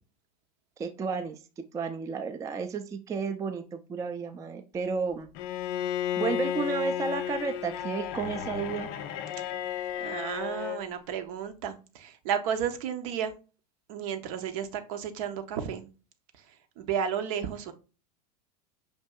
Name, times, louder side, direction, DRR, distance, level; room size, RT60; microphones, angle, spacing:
voice 1, 0.8-5.3 6.2-8.9, right 5 dB, 15° right, 6 dB, 0.4 m, -32 dB
Bowed string instrument, 5.3-10.9, left 10 dB, 50° left, 0.4 m, -33 dB
voice 2, 10.0-13.3 13.9-15.9 16.8-17.7, right 8 dB, 60° right, 7 dB, 0.6 m, -32 dB
5.5 x 2.6 x 2.2 m, 0.34 s
hypercardioid pair, 95°, 20 cm